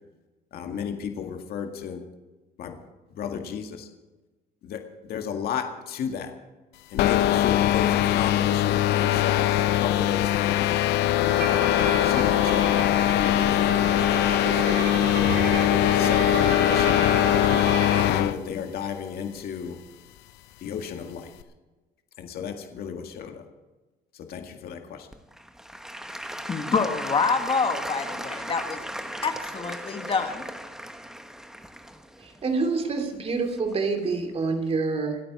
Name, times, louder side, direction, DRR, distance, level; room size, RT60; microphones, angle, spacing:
voice 1, 0.5-2.0 2.6-2.8 3.2-3.9 4.6-6.3 6.9-10.7 11.3-11.7 12.0-12.9 13.2-15.4 15.9-17.1 18.0-19.8 20.6-21.3 22.2-23.5 24.1-25.1, left 7 dB, 65° left, 4 dB, 1.9 m, -33 dB
sound 1, 7.0-18.4, left 13 dB, 90° left, 0.7 m, -21 dB
Bowed string instrument, 11.3-18.2, right 5 dB, 85° right, 2.5 m, -32 dB
Applause / Crowd, 25.1-34.0 34.6-34.7, equal, 5° right, 1.0 m, -37 dB
voice 2, 26.5-28.8 29.2-30.5, left 4 dB, 30° left, 6 dB, 1.6 m, -26 dB
voice 3, 32.2-35.2, right 4 dB, 35° right, 5 dB, 2.8 m, -27 dB
26.5 x 8.8 x 4.9 m, 1.2 s
cardioid pair, 110°, 17 cm